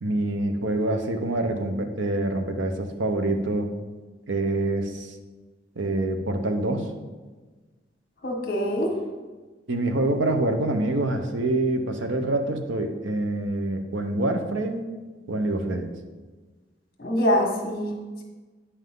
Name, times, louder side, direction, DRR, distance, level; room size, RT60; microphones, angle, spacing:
voice 1, 0.0-3.7 4.3-5.2 5.8-6.9 9.7-14.8 15.3-15.9, right 2 dB, 80° right, 6 dB, 0.8 m, -26 dB
voice 2, 8.2-9.0 17.0-17.9, equal, 50° left, 1 dB, 1.5 m, -24 dB
9.8 x 5.6 x 3.8 m, 1.3 s
head